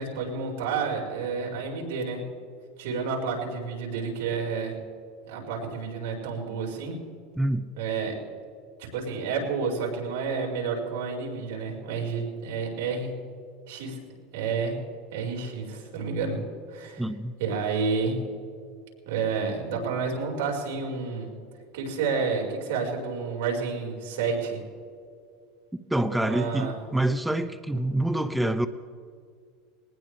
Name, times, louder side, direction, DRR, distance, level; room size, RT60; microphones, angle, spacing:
voice 1, 0.0-2.2 2.8-4.8 5.2-7.0 7.8-8.2 8.9-13.1 13.7-14.0 14.3-14.8 15.1-16.4 16.7-17.0 17.4-18.2 19.0-21.3 21.7-24.6 26.1-26.8, right 5 dB, 75° right, -1 dB, 5.0 m, -30 dB
voice 2, 17.0-17.3 25.9-28.7, right 1 dB, 5° right, 11 dB, 0.6 m, -26 dB
20.5 x 19.5 x 3.4 m, 2.2 s
supercardioid pair, 130°, 0 cm